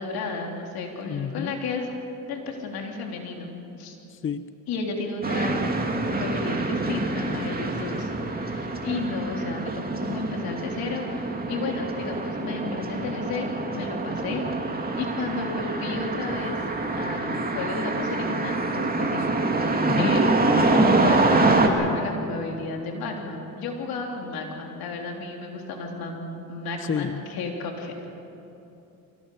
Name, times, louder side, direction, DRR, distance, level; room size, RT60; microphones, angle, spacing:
voice 1, 0.0-1.9 2.3-3.5 3.8-3.9 4.7-5.6 6.1-8.1 8.4-14.4 14.9-16.6 17.0-19.2 19.6-20.3 20.7-27.9, left 3 dB, 80° left, 1 dB, 3.5 m, -32 dB
voice 2, 1.1-1.5 4.1-4.4 19.9-20.1 26.8-27.2, left 7 dB, 35° left, 12 dB, 0.7 m, -29 dB
sound 1, 5.2-21.7, right 2 dB, 25° right, 2.6 m, -25 dB
24.0 x 17.0 x 6.9 m, 2.9 s
cardioid pair, 80°, 36 cm